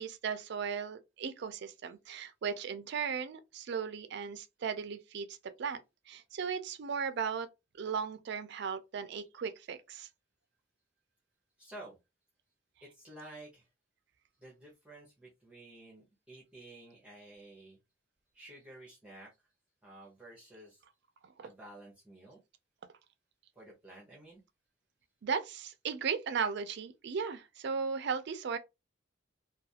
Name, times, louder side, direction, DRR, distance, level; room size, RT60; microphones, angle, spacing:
voice 1, 0.0-5.8 6.1-7.5 7.8-10.1 21.4-21.5 25.2-28.6, right 6 dB, 65° right, 0.4 m, -36 dB
voice 2, 11.6-12.0 12.8-13.7 14.4-17.8 18.3-19.3 19.8-20.8 21.4-22.4 23.6-24.4, right 1 dB, 5° right, 0.7 m, -52 dB
2.4 x 2.3 x 2.7 m
head